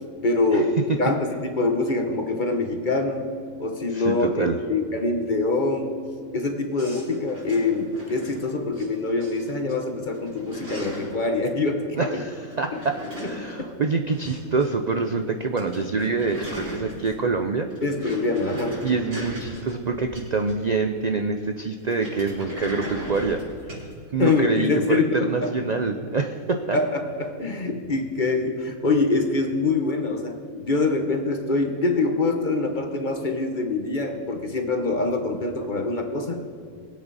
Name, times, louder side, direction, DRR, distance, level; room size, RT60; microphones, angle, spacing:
voice 1, 0.2-1.2 1.6-3.3 3.6-6.0 6.3-12.2 12.7-12.8 13.2-13.3 13.6-13.7 17.8-18.8 24.2-25.5 26.7-36.4, left 3 dB, 35° left, 4 dB, 1.1 m, -24 dB
voice 2, 3.9-4.6 12.0-17.7 18.0-18.1 18.8-23.4 24.1-26.8, right 4 dB, 70° right, 5 dB, 0.4 m, -26 dB
sound 1, 6.8-8.9 9.2-9.7 10.0-11.2 12.5-14.7 14.9-15.0 15.3-15.4 15.6-17.3 17.7-20.8 21.9-23.9, equal, 90° right, 4.9 m, -37 dB
21.5 x 8.5 x 4.1 m, 2.2 s
omnidirectional pair, 1.6 m